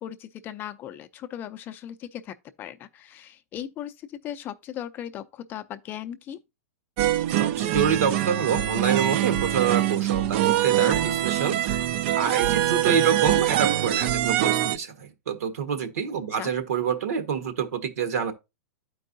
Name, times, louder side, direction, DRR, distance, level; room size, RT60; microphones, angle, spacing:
voice 1, 0.0-6.4 16.3-16.5, left 10 dB, 25° left, 0.5 m, -38 dB
sound 1, 7.0-14.8, right 13 dB, 45° right, 0.4 m, -24 dB
voice 2, 7.4-11.6 12.1-18.3, right 7 dB, 80° right, 1.5 m, -27 dB
12.0 x 4.6 x 2.6 m
hypercardioid pair, 150°, 8 cm